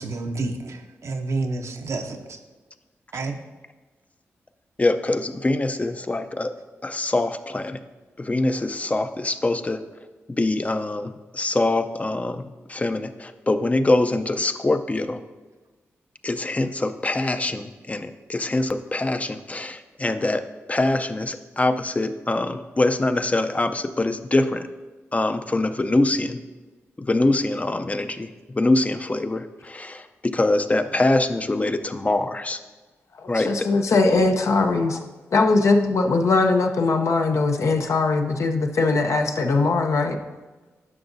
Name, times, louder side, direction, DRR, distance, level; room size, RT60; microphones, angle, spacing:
voice 1, 0.0-2.4 3.1-3.4, right 3 dB, 70° right, 5 dB, 0.7 m, -29 dB
voice 2, 4.8-6.5 6.8-7.8 8.2-9.8 10.3-15.2 16.2-20.4 20.7-24.7 25.1-26.4 27.1-28.3 28.5-32.6 33.3-33.7, left 2 dB, 25° left, 10 dB, 0.5 m, -24 dB
voice 3, 33.2-35.0 35.3-40.2, left 3 dB, 70° left, 4 dB, 0.7 m, -20 dB
11.0 x 5.9 x 2.6 m, 1.3 s
cardioid pair, 55°, 5 cm